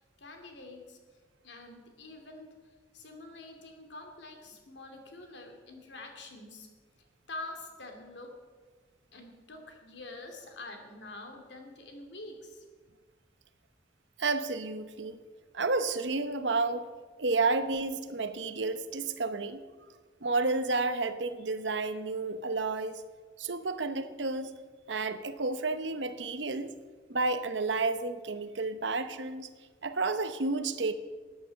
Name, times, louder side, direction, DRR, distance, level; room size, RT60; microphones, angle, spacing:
voice 1, 0.2-1.0 1.4-6.7 7.3-8.3 9.1-12.6, left 2 dB, 75° left, 4 dB, 2.4 m, -46 dB
voice 2, 14.2-15.2 15.5-16.9 17.2-19.6 20.2-23.0 23.4-24.5 24.9-26.7 27.1-29.5 29.8-30.9, right 3 dB, 85° right, 11 dB, 0.9 m, -31 dB
13.0 x 9.3 x 6.4 m, 1.4 s
head